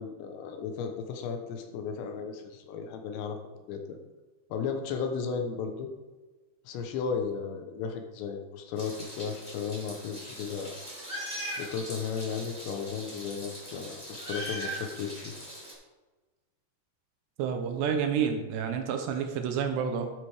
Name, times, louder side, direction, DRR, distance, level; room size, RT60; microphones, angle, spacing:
voice 1, 0.0-3.4 3.7-4.0 4.5-5.9 6.7-10.8 11.6-15.3, left 6 dB, 80° left, 5 dB, 3.1 m, -35 dB
Meow, 8.8-15.7, right 1 dB, 10° left, 2.1 m, -40 dB
voice 2, 17.4-20.1, right 7 dB, 80° right, 5 dB, 2.8 m, -29 dB
12.5 x 7.9 x 3.5 m, 1.2 s
omnidirectional pair, 5.3 m